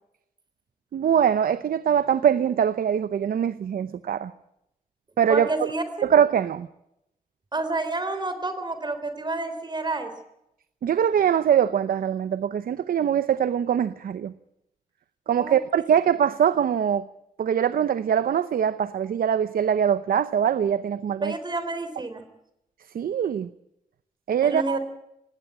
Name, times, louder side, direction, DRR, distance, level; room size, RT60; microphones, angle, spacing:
voice 1, 0.9-4.3 5.2-5.7 6.0-6.7 10.8-14.3 15.3-17.1 17.4-21.4 22.9-23.5 24.3-24.8, right 8 dB, 80° right, 14 dB, 0.8 m, -23 dB
voice 2, 5.3-5.8 7.5-10.1 15.4-15.6 21.2-22.2 24.4-24.8, right 2 dB, 30° right, 9 dB, 3.6 m, -29 dB
19.0 x 17.5 x 9.0 m, 0.82 s
wide cardioid pair, 120°, 15 cm